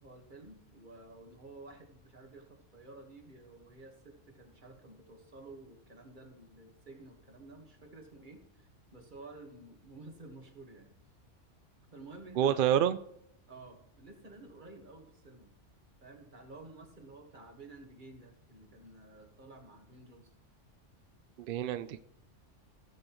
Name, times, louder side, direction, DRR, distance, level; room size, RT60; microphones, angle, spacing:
voice 1, 0.0-2.4 2.7-10.9 11.9-12.8 13.5-15.5 16.0-20.3, right 2 dB, 40° right, 3 dB, 1.7 m, -52 dB
voice 2, 12.4-13.0 21.4-22.0, right 10 dB, 60° right, 12 dB, 0.6 m, -28 dB
16.5 x 7.7 x 3.1 m, 0.75 s
omnidirectional pair, 1.2 m